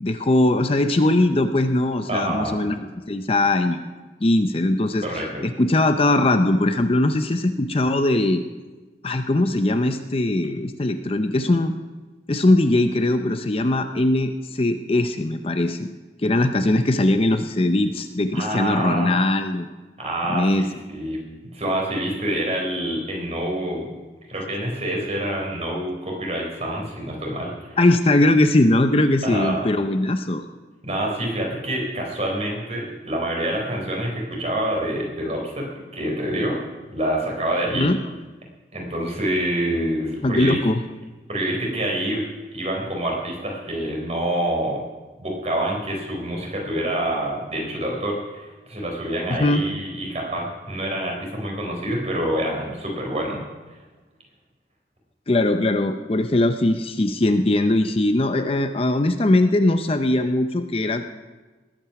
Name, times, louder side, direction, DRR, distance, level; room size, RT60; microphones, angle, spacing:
voice 1, 0.0-3.8 4.2-5.1 5.4-8.4 9.0-11.7 12.3-15.9 16.2-19.7 20.3-20.6 27.8-30.4 37.7-38.0 40.2-40.8 49.3-49.6 55.3-61.0, left 1 dB, 35° left, 7 dB, 0.6 m, -20 dB
voice 2, 2.1-2.6 5.0-5.4 18.3-19.2 20.0-21.2 21.5-23.9 24.3-27.8 29.2-29.7 30.8-36.6 36.9-37.9 38.7-40.6 41.3-44.8 45.2-53.4, right 1 dB, 40° right, -1 dB, 4.1 m, -27 dB
19.5 x 9.0 x 5.9 m, 1.3 s
head